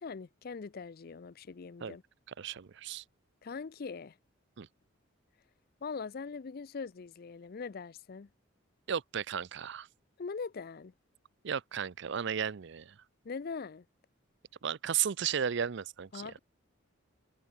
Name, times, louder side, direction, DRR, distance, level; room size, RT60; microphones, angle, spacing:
voice 1, 0.0-2.0 3.4-4.1 5.8-8.3 10.2-10.9 13.2-13.8 16.1-16.4, left 5 dB, 50° left, 0.5 m, -41 dB
voice 2, 2.4-3.0 4.6-4.7 8.9-9.9 11.4-12.9 14.6-16.3, right 8 dB, 60° right, 0.5 m, -34 dB
head